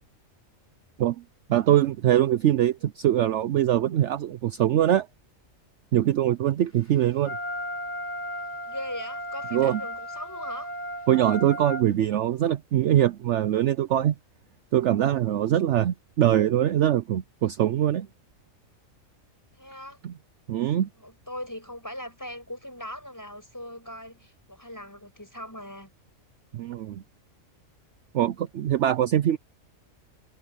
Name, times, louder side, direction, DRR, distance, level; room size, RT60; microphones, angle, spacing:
voice 1, 1.5-5.1 5.9-7.4 9.5-9.8 11.1-14.1 14.7-18.1 20.0-20.1 20.5-20.9 26.5-27.0 28.1-29.4, right 11 dB, 65° right, 0.9 m, -23 dB
Wind instrument woodwind instrument, 7.2-11.9, equal, 45° left, 5.0 m, -35 dB
voice 2, 8.6-10.7 19.5-20.0 20.9-25.9, left 1 dB, 15° left, 6.8 m, -39 dB
omnidirectional pair, 1.4 m